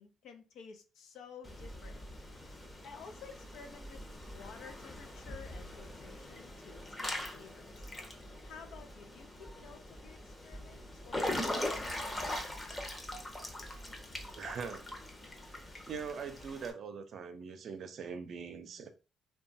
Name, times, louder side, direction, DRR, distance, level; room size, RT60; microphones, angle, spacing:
voice 1, 0.0-2.0 2.8-12.8, left 5 dB, 80° left, 0.4 m, -53 dB
Water / Splash splatter / Drip, 1.4-16.7, left 1 dB, 20° left, 0.7 m, -42 dB
voice 2, 14.4-14.8 15.9-18.9, right 6 dB, 60° right, 0.5 m, -42 dB
2.9 x 2.2 x 2.6 m
cardioid pair, 90°, 0 cm